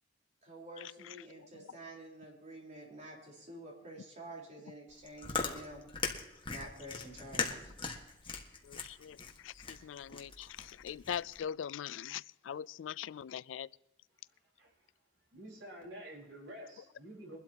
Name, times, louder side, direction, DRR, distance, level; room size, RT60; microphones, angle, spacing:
voice 1, 0.4-5.9 6.5-7.7, right 1 dB, 40° right, 4.1 m, -49 dB
Chewing mastication, 4.9-11.4, left 4 dB, 25° left, 1.5 m, -40 dB
voice 2, 8.6-9.2 9.4-13.7, left 9 dB, 85° left, 0.3 m, -41 dB
voice 3, 15.3-17.4, right 1 dB, 80° right, 4.5 m, -49 dB
23.0 x 12.0 x 2.9 m
head